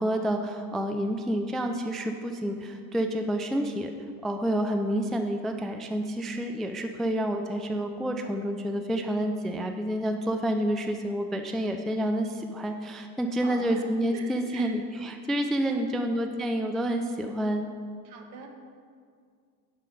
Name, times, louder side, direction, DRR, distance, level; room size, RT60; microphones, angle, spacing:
voice 1, 0.0-3.9 4.2-17.7, equal, ahead, 5 dB, 0.3 m, -29 dB
voice 2, 13.3-13.8 14.1-14.8 15.6-16.2 18.0-18.5, right 4 dB, 65° right, 3 dB, 1.2 m, -42 dB
10.0 x 5.5 x 5.3 m, 2.1 s
figure-of-eight pair, 50°, 49 cm